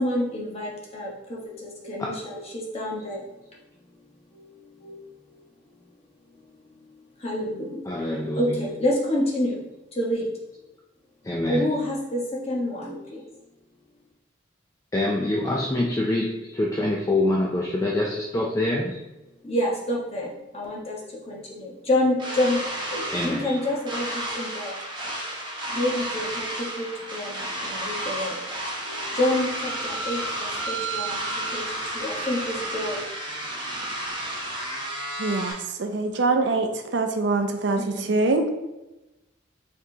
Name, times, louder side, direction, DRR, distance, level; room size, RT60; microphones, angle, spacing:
voice 1, 0.0-3.2 4.8-5.0 7.2-7.8 8.4-9.6 10.0-10.3 11.5-13.2 17.8-18.0 19.4-21.0 21.3-22.6 22.9-24.1 24.3-24.7 25.7-28.4 28.8-31.2 31.5-31.6 31.9-33.0 36.4-36.5 37.8-38.1, left 1 dB, 35° left, -4 dB, 1.0 m, -28 dB
voice 2, 7.9-8.7 11.2-11.7 14.9-19.0 23.1-23.5, left 1 dB, 15° left, -2 dB, 0.4 m, -25 dB
sound 1, 22.2-35.5, right 1 dB, 25° right, 0.9 m, -32 dB
voice 3, 35.2-38.4, right 3 dB, 65° right, 6 dB, 0.5 m, -24 dB
4.7 x 3.6 x 2.8 m, 1.0 s
head